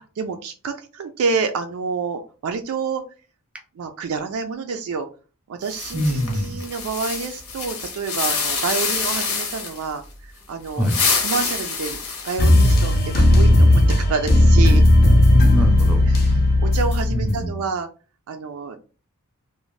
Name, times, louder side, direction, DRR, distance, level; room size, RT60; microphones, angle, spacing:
voice 1, 0.0-3.0 3.8-5.1 5.5-10.8 11.2-12.0 12.2-13.8 14.1-14.8 16.1-16.3 16.6-17.9 18.3-18.8, right 5 dB, 70° right, 6 dB, 0.3 m, -28 dB
sound 1, 5.6-9.9 10.7-13.0, left 5 dB, 80° left, 0.8 m, -26 dB
voice 2, 5.9-6.6 10.8-11.0 15.0-16.5 17.1-17.6, equal, 5° right, 3 dB, 0.5 m, -24 dB
sound 2, 12.4-17.4, left 1 dB, 45° left, 0.5 m, -15 dB
2.6 x 2.1 x 3.0 m, 0.36 s
head